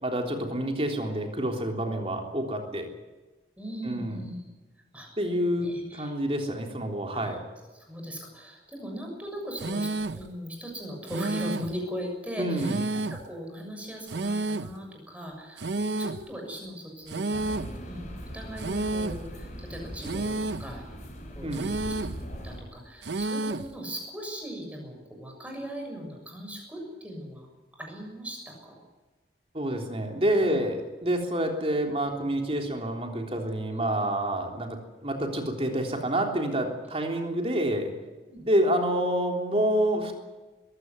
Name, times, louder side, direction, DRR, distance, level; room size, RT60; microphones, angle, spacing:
voice 1, 0.0-2.9 3.8-4.2 5.2-7.4 12.4-12.8 21.4-21.7 29.5-37.9 38.5-40.2, right 1 dB, 35° right, 2 dB, 3.5 m, -28 dB
voice 2, 3.6-4.4 4.9-5.1 5.6-6.1 7.1-7.4 7.7-18.0 18.3-20.8 21.3-27.5 27.7-28.8 30.4-30.6 33.7-34.0 36.9-37.1 38.3-38.4, equal, 10° right, 1 dB, 6.8 m, -39 dB
sound 1, 9.6-10.3 11.1-11.8 12.6-13.3 14.1-14.8 15.6-16.3 17.1-17.8 18.6-19.3 20.0-20.7 21.5-22.2 23.0-23.7, right 2 dB, 80° right, 0.7 m, -31 dB
sound 2, 17.3-22.6, equal, 45° left, 5.6 m, -40 dB
21.5 x 16.0 x 9.6 m, 1.2 s
head